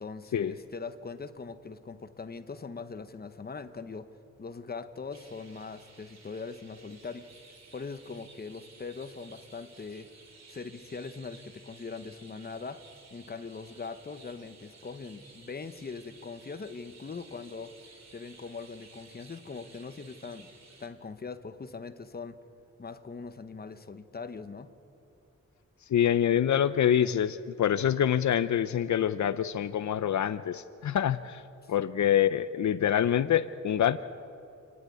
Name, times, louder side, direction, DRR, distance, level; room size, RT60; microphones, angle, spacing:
voice 1, 0.0-4.1 4.4-7.3 7.7-10.1 10.5-12.8 13.1-17.7 18.1-20.5 20.8-22.4 22.8-24.7 31.6-31.7, left 4 dB, 30° left, 10 dB, 0.9 m, -41 dB
Chirp tweet, 5.1-20.9, right 4 dB, 60° right, 2.6 m, -55 dB
voice 2, 25.9-31.4 31.7-34.0, left 10 dB, 70° left, 13 dB, 0.5 m, -26 dB
28.5 x 11.0 x 9.4 m, 2.8 s
wide cardioid pair, 125°, 30 cm